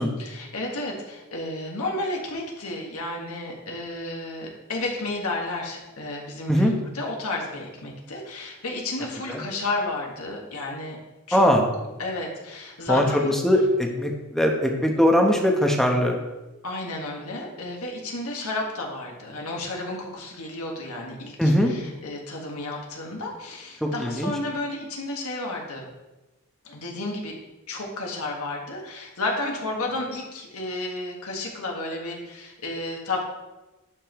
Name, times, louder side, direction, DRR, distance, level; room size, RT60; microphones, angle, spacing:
voice 1, 0.2-6.7 6.9-11.0 11.3-11.5 12.0-13.3 16.6-25.8 26.6-27.3 27.7-33.2, left 2 dB, 75° left, -1 dB, 1.7 m, -32 dB
voice 2, 11.3-11.6 12.9-16.2 21.4-21.7 23.8-24.3, equal, ahead, 1 dB, 1.0 m, -21 dB
11.5 x 5.4 x 3.1 m, 1.1 s
head